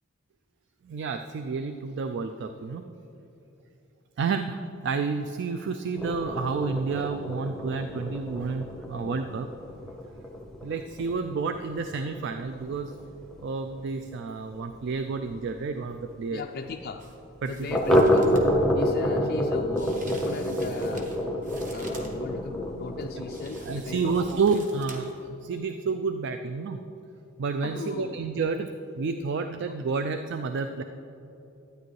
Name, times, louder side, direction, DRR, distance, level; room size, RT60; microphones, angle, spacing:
voice 1, 0.8-2.8 4.2-9.5 10.6-12.9 13.4-16.4 17.4-17.8 23.7-26.8 27.4-28.7 29.0-30.8, right 4 dB, 55° right, 8 dB, 0.3 m, -30 dB
sound 1, 6.0-15.2 15.5-15.6 15.9-16.0 16.4-16.5 17.7-24.4, equal, ahead, 0.7 m, -28 dB
voice 2, 16.3-17.1 17.5-18.3 18.7-21.1 21.7-24.4 27.6-28.2, left 4 dB, 45° left, 3 dB, 0.3 m, -37 dB
sound 2, 17.0-17.2 17.4-18.5 19.8-22.2 23.3-25.2 25.6-25.7, right 2 dB, 40° right, 1.1 m, -48 dB
12.5 x 9.3 x 3.2 m, 2.9 s
head